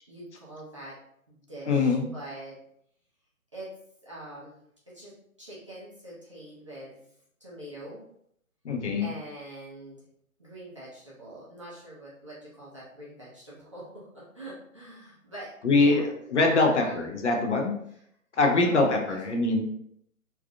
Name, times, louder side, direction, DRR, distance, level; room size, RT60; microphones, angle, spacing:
voice 1, 0.1-0.9 1.3-2.6 3.5-3.7 4.0-4.6 4.9-5.1 5.4-7.0 7.4-8.0 9.0-10.0 10.4-16.1 16.5-17.0 18.4-19.4, right 1 dB, 25° right, -8 dB, 0.5 m, -43 dB
voice 2, 1.7-2.1 8.6-9.1 15.6-17.8 18.4-19.6, left 3 dB, 55° left, 2 dB, 0.7 m, -23 dB
3.4 x 2.5 x 2.3 m, 0.71 s
figure-of-eight pair, 150°, 42 cm